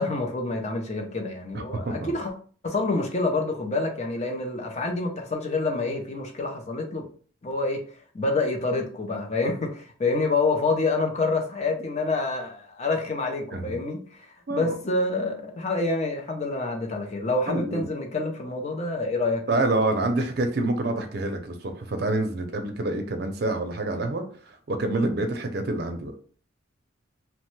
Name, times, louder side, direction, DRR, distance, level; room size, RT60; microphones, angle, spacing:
voice 1, 0.0-2.3 2.6-7.0 7.4-7.8 8.1-19.4, left 3 dB, 35° left, 0.6 m, -27 dB
voice 2, 1.5-2.1 13.5-13.8 14.5-14.8 17.5-17.9 19.5-26.1, right 2 dB, 55° right, 0.5 m, -27 dB
3.0 x 2.2 x 3.0 m
head